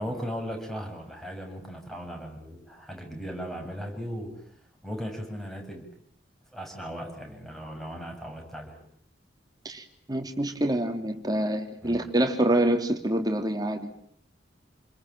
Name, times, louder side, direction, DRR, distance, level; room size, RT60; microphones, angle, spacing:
voice 1, 0.0-4.3 4.8-5.9 6.5-8.8 11.8-12.0, equal, ahead, 3 dB, 7.1 m, -37 dB
voice 2, 9.6-13.9, right 1 dB, 20° right, 5 dB, 3.2 m, -26 dB
29.0 x 21.5 x 9.1 m, 0.67 s
head